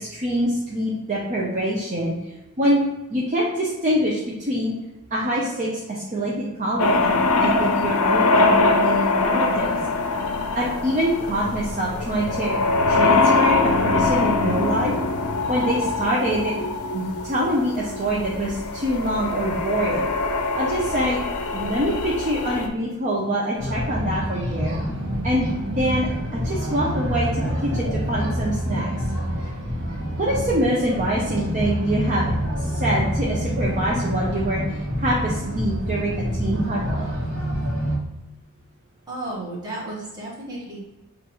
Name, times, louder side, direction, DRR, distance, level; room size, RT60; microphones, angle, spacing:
voice 1, 0.0-2.1 2.6-2.8 3.1-4.7 5.1-7.1 7.4-9.8 10.5-12.6 12.9-14.9 15.5-16.5 16.9-20.1 20.6-21.2 21.5-24.8 25.2-28.9 30.2-32.3 32.6-37.1, equal, 35° right, -4 dB, 0.6 m, -25 dB
sound 1, 6.8-22.7, left 3 dB, 75° left, 0.5 m, -23 dB
sound 2, 23.6-38.0, equal, 55° right, 1.3 m, -27 dB
voice 2, 39.1-40.8, right 2 dB, 20° right, -5 dB, 1.2 m, -33 dB
6.6 x 2.5 x 3.0 m, 1.0 s
head